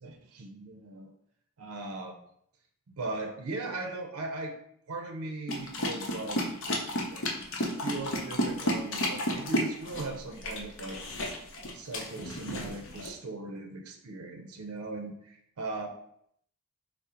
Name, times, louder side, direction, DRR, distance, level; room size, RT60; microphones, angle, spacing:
voice 1, 0.0-1.1 1.6-2.3 2.9-4.5 4.9-6.4 6.7-7.3 7.8-11.0 11.7-15.9, right 2 dB, 75° right, 3 dB, 0.5 m, -39 dB
sound 1, 5.5-13.1, left 1 dB, 55° left, 0.6 m, -32 dB
4.2 x 2.0 x 3.6 m, 0.69 s
head